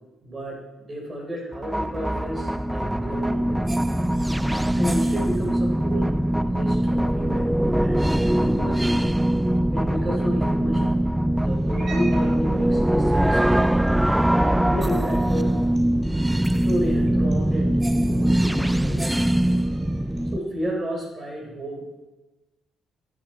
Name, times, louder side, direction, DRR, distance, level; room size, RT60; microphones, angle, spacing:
voice 1, 0.2-3.7 4.7-6.2 6.4-9.0 9.7-13.8 14.7-15.5 16.6-19.1 20.3-21.9, equal, 30° right, 0 dB, 3.9 m, -32 dB
sound 1, 1.5-20.4, right 1 dB, 5° right, 0.3 m, -22 dB
Cat, 11.4-20.3, right 3 dB, 55° right, 2.2 m, -46 dB
9.5 x 8.4 x 4.4 m, 1.1 s
cardioid pair, 90°, 0 cm